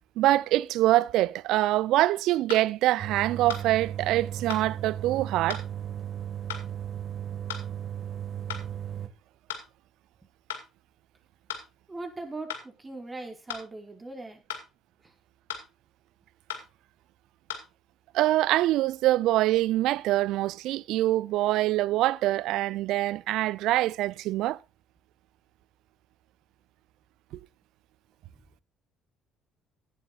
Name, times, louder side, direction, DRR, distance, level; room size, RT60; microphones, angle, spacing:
voice 1, 0.2-5.6 18.1-24.6, right 15 dB, 65° right, 0.5 m, -24 dB
sound 1, 2.5-2.7 3.5-3.7 4.5-4.7 5.5-5.7 6.5-6.7 7.5-7.7 8.5-8.7 9.5-9.7 10.5-10.7 11.5-11.7 12.5-12.7 13.5-13.7 14.5-14.7 15.5-15.7 16.5-16.7 17.5-17.6, left 8 dB, 85° left, 2.1 m, -36 dB
sound 2, 3.0-9.1, right 10 dB, 50° right, 1.8 m, -36 dB
voice 2, 11.9-14.4, right 2 dB, 25° right, 5.1 m, -40 dB
16.5 x 11.5 x 2.5 m
hypercardioid pair, 55°, 0 cm